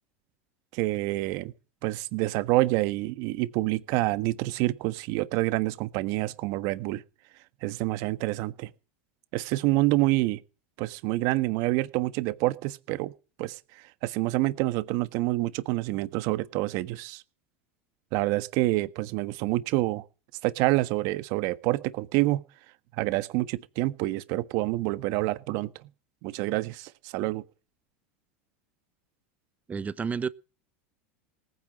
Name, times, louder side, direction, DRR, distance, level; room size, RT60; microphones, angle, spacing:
voice 1, 0.7-1.5 1.8-7.0 7.6-8.7 9.3-10.4 10.8-13.1 13.4-13.6 14.0-17.2 18.1-20.0 20.4-22.4 23.0-25.7 26.2-27.4, right 19 dB, 60° right, 1.4 m, -27 dB
voice 2, 29.7-30.3, right 6 dB, 20° right, 0.9 m, -30 dB
19.0 x 9.5 x 6.3 m
hypercardioid pair, 105°, 7 cm